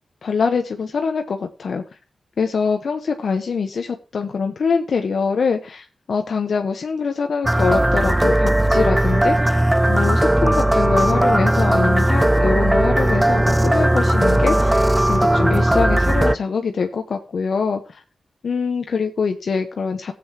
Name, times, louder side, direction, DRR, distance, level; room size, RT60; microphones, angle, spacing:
voice 1, 0.2-1.8 2.4-18.0 18.4-20.1, left 5 dB, 65° left, 5 dB, 1.0 m, -24 dB
sound 1, 7.4-16.4, right 1 dB, 10° right, 0.5 m, -17 dB
18.5 x 8.0 x 2.9 m, 0.32 s
wide cardioid pair, 135°, 0 cm